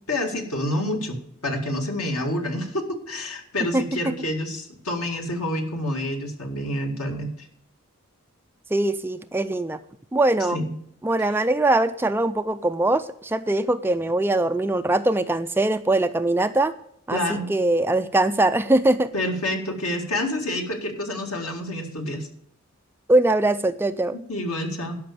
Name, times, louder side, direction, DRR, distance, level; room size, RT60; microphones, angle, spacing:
voice 1, 0.1-1.2 1.4-7.5 10.5-10.7 11.2-11.3 17.1-17.5 19.1-22.3 24.1-25.0, left 1 dB, 85° left, 3 dB, 2.0 m, -28 dB
voice 2, 3.7-4.1 8.7-9.8 10.1-10.6 11.0-16.7 17.1-19.1 23.1-24.2, right 2 dB, 10° right, 10 dB, 0.3 m, -22 dB
11.5 x 5.7 x 6.8 m, 0.72 s
head